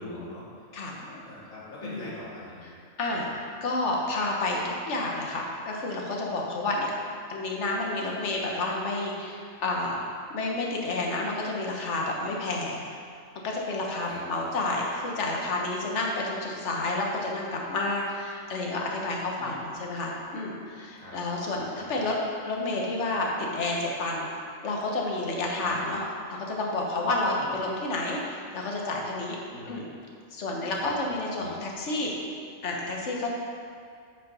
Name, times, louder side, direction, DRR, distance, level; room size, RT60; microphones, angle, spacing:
voice 1, 0.0-2.7 3.0-3.4 14.0-14.2 19.4-19.6 21.0-21.2 21.5-22.1 25.6-25.8 27.4-27.6 29.5-29.8 30.7-30.9 31.4-31.6, left 1 dB, 80° left, -7 dB, 2.6 m, -44 dB
voice 2, 3.0-6.9 7.3-10.0 10.3-12.8 13.4-22.2 22.5-24.3 24.6-26.0 26.3-29.4 29.7-29.9 30.3-32.1 32.6-33.3, left 2 dB, 60° left, -1 dB, 1.5 m, -30 dB
8.5 x 5.7 x 5.4 m, 2.3 s
omnidirectional pair, 1.4 m